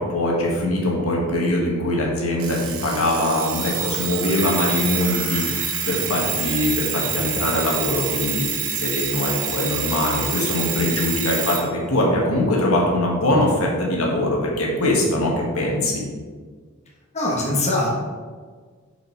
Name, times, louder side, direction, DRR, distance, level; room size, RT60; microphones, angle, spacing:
voice 1, 0.0-8.4 8.7-11.6 11.9-16.0, left 1 dB, 80° left, -2 dB, 1.5 m, -22 dB
Alarm, 2.4-11.7, right 6 dB, 70° right, 0.9 m, -27 dB
voice 2, 17.1-17.9, left 2 dB, 30° left, -3 dB, 1.1 m, -22 dB
5.7 x 5.1 x 4.5 m, 1.5 s
head